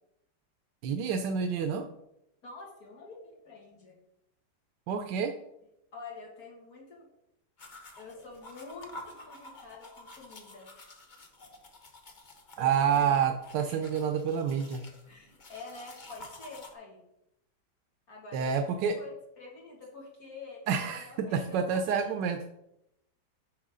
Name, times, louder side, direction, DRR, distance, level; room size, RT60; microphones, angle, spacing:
voice 1, 0.8-1.8 4.9-5.3 12.6-14.8 18.3-18.9 20.7-22.5, right 7 dB, 90° right, 6 dB, 1.3 m, -28 dB
voice 2, 2.4-3.2 3.4-4.0 5.9-7.1 7.6-10.7 12.6-13.1 13.6-13.8 15.1-17.0 18.1-22.2, left 3 dB, 60° left, -2 dB, 2.5 m, -47 dB
sound 1, 7.6-16.7, left 2 dB, 35° left, 0.9 m, -50 dB
9.5 x 6.1 x 3.7 m, 0.83 s
omnidirectional pair, 1.9 m